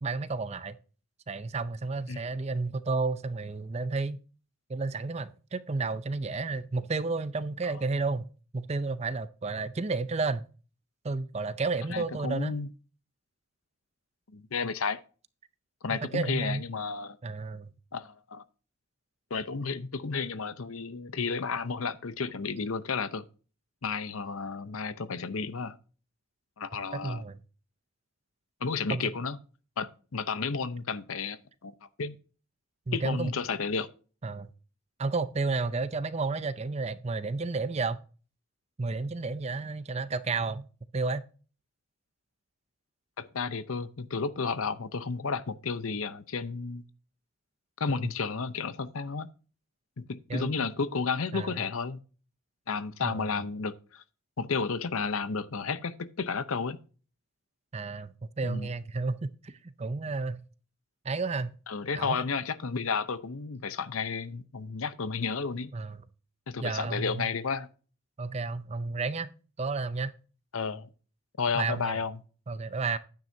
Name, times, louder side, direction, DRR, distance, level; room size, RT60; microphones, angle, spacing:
voice 1, 0.0-0.8 1.3-4.2 4.7-8.3 8.5-10.5 11.0-12.5 16.1-16.6 17.2-17.7 26.9-27.4 28.9-29.0 32.9-33.3 34.2-34.5 35.0-38.0 38.8-40.7 40.9-41.2 50.3-50.5 51.3-51.6 53.0-53.4 57.7-60.4 61.0-61.5 62.0-62.2 65.7-66.0 66.6-67.3 68.2-69.3 69.6-70.1 71.5-72.0 72.5-73.0, right 3 dB, 30° right, 0.5 m, -31 dB
voice 2, 11.9-12.7 14.3-15.0 15.8-17.2 17.9-18.4 19.3-23.3 23.8-25.8 26.6-27.2 28.6-29.4 29.8-32.2 32.9-33.9 43.2-46.8 47.8-49.3 50.0-52.0 52.7-54.0 54.4-56.8 58.4-58.7 61.7-65.7 66.5-67.7 70.5-70.9 71.4-72.2, left 5 dB, 75° left, 0.7 m, -32 dB
10.5 x 9.3 x 2.7 m
head